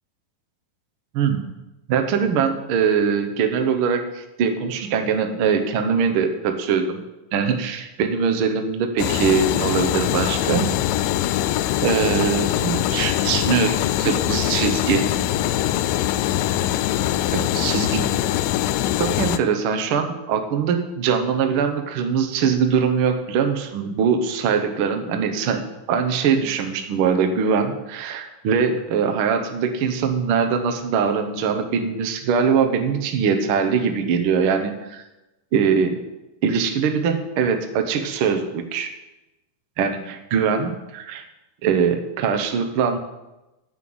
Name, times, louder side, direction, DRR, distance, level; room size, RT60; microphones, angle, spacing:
voice 1, 1.1-1.4 1.9-7.0 7.3-10.6 11.8-15.1 17.3-18.0 19.0-25.6 25.9-35.0 35.5-36.0 36.4-38.9 39.8-41.2 41.6-43.0, right 6 dB, 85° right, 5 dB, 1.1 m, -22 dB
sound 1, 9.0-19.4, left 13 dB, 85° left, 2.2 m, -22 dB
9.7 x 5.8 x 7.7 m, 0.99 s
omnidirectional pair, 3.8 m